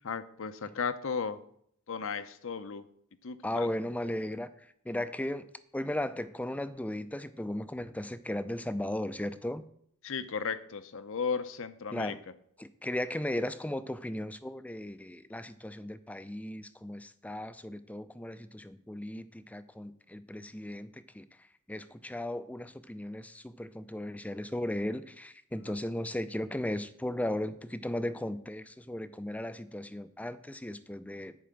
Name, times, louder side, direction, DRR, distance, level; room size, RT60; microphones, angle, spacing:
voice 1, 0.0-1.4 1.9-2.8 3.2-3.7 10.0-12.2, left 5 dB, 65° left, 13 dB, 0.7 m, -35 dB
voice 2, 3.4-9.7 11.9-12.2 12.6-31.4, left 1 dB, 5° left, 13 dB, 0.5 m, -36 dB
10.0 x 4.8 x 7.7 m, 0.67 s
head